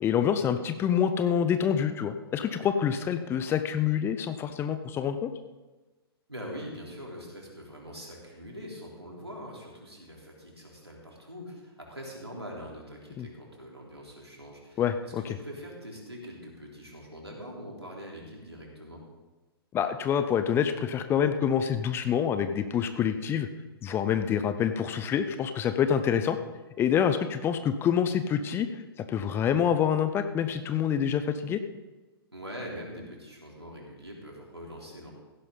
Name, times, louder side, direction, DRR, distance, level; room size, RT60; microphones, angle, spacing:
voice 1, 0.0-5.3 13.2-13.3 14.8-15.4 19.7-23.5 23.8-26.4 26.8-28.7 29.1-31.6, left 8 dB, 15° left, 10 dB, 0.6 m, -26 dB
voice 2, 6.3-19.0 32.3-35.1, equal, 85° right, -2 dB, 3.8 m, -43 dB
15.5 x 11.0 x 3.9 m, 1.2 s
figure-of-eight pair, 110°, 13 cm